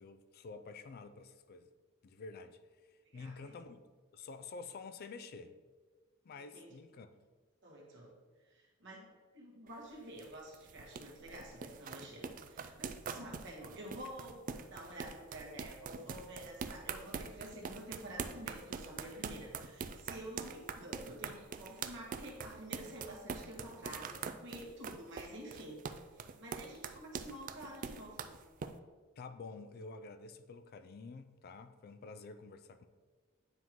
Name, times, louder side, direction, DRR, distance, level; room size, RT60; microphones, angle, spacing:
voice 1, 0.0-1.7 2.0-2.6 3.1-3.8 4.1-5.5 6.2-7.1 29.2-32.9, left 4 dB, 50° left, 10 dB, 0.4 m, -49 dB
voice 2, 3.0-3.6 6.4-6.8 7.6-8.1 8.4-9.1 9.3-28.3, right 1 dB, 65° right, -2 dB, 1.5 m, -49 dB
sound 1, 9.7-28.7, right 6 dB, 40° right, 0.3 m, -44 dB
9.4 x 3.7 x 3.0 m, 1.4 s
head